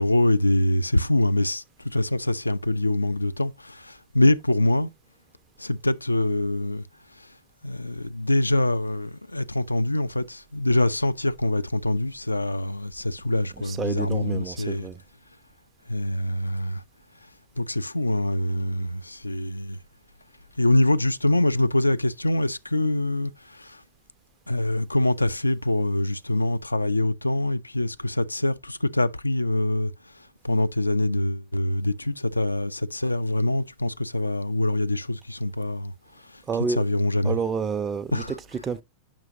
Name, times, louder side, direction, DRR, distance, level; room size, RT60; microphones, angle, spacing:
voice 1, 0.0-4.9 5.6-6.9 7.1-7.4 7.6-14.9 15.9-16.8 17.6-19.8 20.6-23.8 24.5-37.5 38.1-38.7, left 1 dB, 85° left, 0.3 m, -25 dB
voice 2, 13.6-15.0 36.5-36.8 37.2-38.2 38.6-38.8, right 5 dB, 20° right, 0.4 m, -29 dB
8.8 x 6.1 x 2.5 m
figure-of-eight pair, 90°, 0 cm